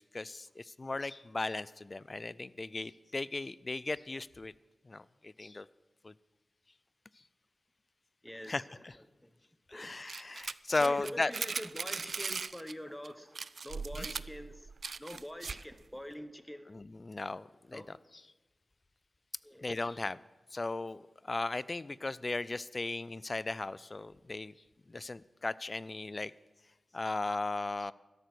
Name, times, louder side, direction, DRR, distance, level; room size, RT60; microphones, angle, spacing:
voice 1, 0.0-4.5 4.9-5.7 6.0-6.1 8.5-8.6 9.7-11.3 14.0-14.1 16.7-17.8 19.6-20.2 20.5-24.5 24.9-26.3 26.9-27.9, left 2 dB, 40° left, 0.4 m, -36 dB
voice 2, 8.2-9.3 9.7-10.0 10.8-13.4 13.6-14.7 15.0-16.7 17.7-17.9 19.4-19.8, equal, 5° left, 1.0 m, -45 dB
sound 1, 10.1-12.7 13.0-13.1 13.4-15.7, right 4 dB, 65° right, 0.3 m, -39 dB
13.0 x 11.5 x 6.1 m
cardioid pair, 60°, 0 cm